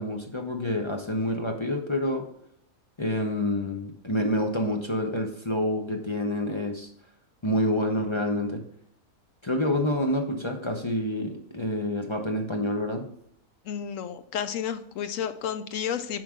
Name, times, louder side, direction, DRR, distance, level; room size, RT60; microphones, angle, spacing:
voice 1, 0.0-2.3 3.0-6.9 7.4-8.6 9.4-13.1, left 1 dB, 30° left, 2 dB, 0.6 m, -28 dB
voice 2, 13.7-16.2, left 8 dB, 75° left, 11 dB, 1.0 m, -31 dB
7.8 x 4.7 x 3.7 m, 0.73 s
omnidirectional pair, 1.5 m